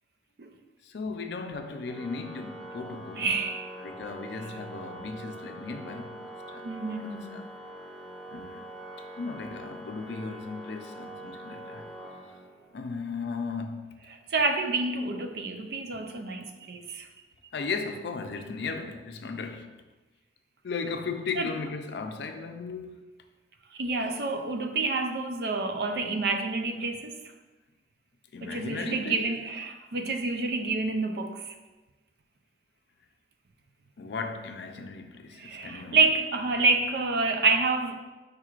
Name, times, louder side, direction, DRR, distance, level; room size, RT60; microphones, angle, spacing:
voice 1, 0.8-3.3 3.8-7.4 8.3-8.7 9.2-11.8 12.7-13.9 17.5-19.7 20.6-23.1 28.3-29.3 34.0-36.0, left 4 dB, 70° left, 0.4 m, -36 dB
Organ, 1.8-12.8, right 1 dB, ahead, 0.5 m, -44 dB
voice 2, 3.2-3.7 6.6-7.4 14.3-17.1 21.4-21.5 23.8-27.2 28.4-31.5 35.4-37.9, right 3 dB, 60° right, 0.4 m, -28 dB
4.8 x 4.4 x 2.4 m
head